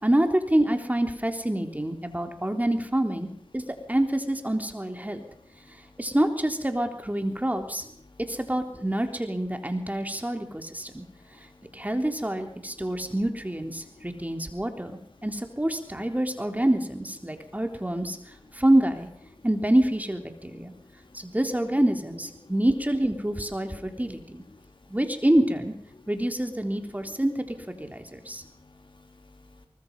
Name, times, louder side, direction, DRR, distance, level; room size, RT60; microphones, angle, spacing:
voice 1, 0.0-3.3 3.5-5.2 5.7-7.9 8.3-11.0 11.7-14.9 15.2-18.2 18.5-19.1 19.4-20.7 21.1-24.4 24.9-25.7 26.1-28.4, right 1 dB, 15° right, 5 dB, 3.5 m, -26 dB
voice 2, 28.1-29.7, left 2 dB, 65° left, 4 dB, 3.9 m, -55 dB
23.5 x 21.0 x 5.5 m, 0.63 s
cardioid pair, 40°, 9 cm